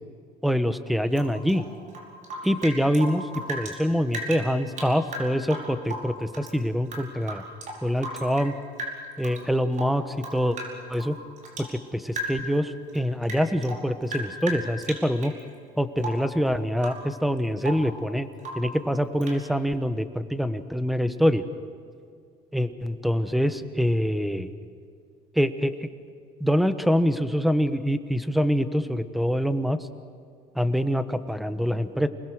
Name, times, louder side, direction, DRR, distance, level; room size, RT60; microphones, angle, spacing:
voice 1, 0.4-1.7 2.4-7.4 7.8-8.5 9.2-10.6 10.9-11.2 11.7-15.3 15.8-18.3 18.5-21.4 22.5-24.5 25.3-25.9 26.4-29.8 30.5-32.1, equal, ahead, 10 dB, 1.2 m, -25 dB
Rain / Drip, 1.1-3.8 4.1-6.5 6.8-8.5 8.8-9.4 9.7-11.7 12.1-12.6 12.9-15.4 16.0-16.3 16.8-17.1 17.4-17.9 18.4-18.7 19.2-19.4, right 1 dB, 50° right, 5.2 m, -36 dB
28.0 x 20.5 x 6.4 m, 2.3 s
cardioid pair, 110°, 17 cm